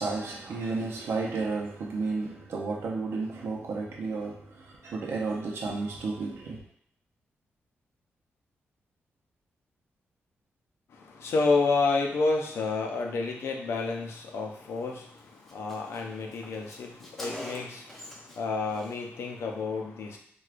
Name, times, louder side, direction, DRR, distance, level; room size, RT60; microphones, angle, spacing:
voice 1, 0.0-6.6, right 3 dB, 65° right, -2 dB, 0.6 m, -32 dB
voice 2, 10.9-20.2, left 3 dB, 75° left, 2 dB, 0.5 m, -30 dB
Car, 14.8-14.9 15.2-15.3 15.5-18.4 18.7-19.0, left 1 dB, 5° left, 0.5 m, -43 dB
4.5 x 2.3 x 2.4 m, 0.67 s
wide cardioid pair, 175°, 4 cm